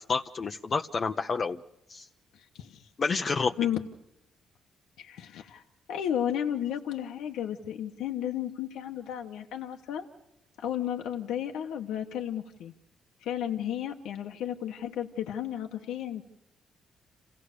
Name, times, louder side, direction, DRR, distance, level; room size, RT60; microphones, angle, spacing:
voice 1, 0.0-1.6 1.9-2.0 3.0-3.5, left 4 dB, 40° left, 5 dB, 0.8 m, -29 dB
voice 2, 2.3-2.9 3.6-3.9 5.0-5.6 5.9-10.1 10.6-12.7 13.2-16.2, left 10 dB, 85° left, 3 dB, 1.2 m, -33 dB
28.0 x 16.5 x 6.7 m, 0.90 s
cardioid pair, 90°, 0 cm